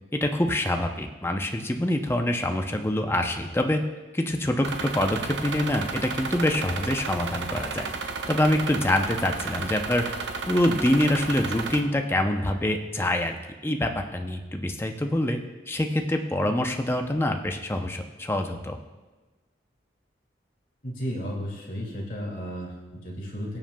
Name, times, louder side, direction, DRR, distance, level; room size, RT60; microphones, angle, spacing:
voice 1, 0.1-3.8 4.1-7.9 8.3-10.0 10.5-13.4 13.6-15.4 15.7-18.8, left 1 dB, 15° left, 4 dB, 0.5 m, -25 dB
sound 1, 4.6-11.8, right 4 dB, 80° right, 0.8 m, -33 dB
voice 2, 20.8-23.6, equal, 50° left, -3 dB, 2.2 m, -33 dB
19.5 x 7.4 x 2.3 m, 1.2 s
head